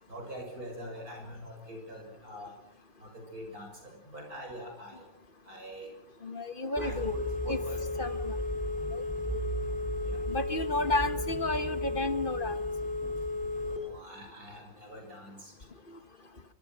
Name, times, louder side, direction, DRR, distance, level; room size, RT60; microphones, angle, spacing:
voice 1, 0.1-2.5 3.0-5.1 5.4-5.9 6.6-7.8 10.0-10.2 13.6-15.5, equal, 55° right, 2 dB, 7.9 m, -44 dB
voice 2, 6.2-7.1 7.5-7.6 8.0-8.4 8.9-9.0 9.3-9.4 10.3-12.6 15.9-16.0, left 2 dB, 35° left, 11 dB, 1.1 m, -32 dB
Telephone, 6.8-13.8, left 2 dB, 5° left, 5.0 m, -33 dB
25.0 x 24.0 x 6.3 m, 0.82 s
omnidirectional pair, 1.9 m